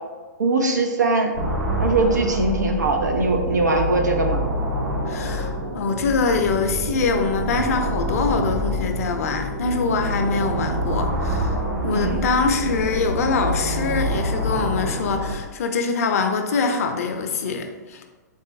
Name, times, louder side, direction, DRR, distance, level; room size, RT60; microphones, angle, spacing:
voice 1, 0.4-1.3 1.8-4.4 11.9-12.2, right 2 dB, 70° right, 3 dB, 0.6 m, -21 dB
sound 1, 1.3-15.3, right 1 dB, 55° right, 1.4 m, -26 dB
voice 2, 5.1-11.6 11.8-18.0, left 4 dB, 55° left, 5 dB, 0.5 m, -24 dB
4.0 x 3.7 x 2.6 m, 1.3 s
figure-of-eight pair, 110°, 10 cm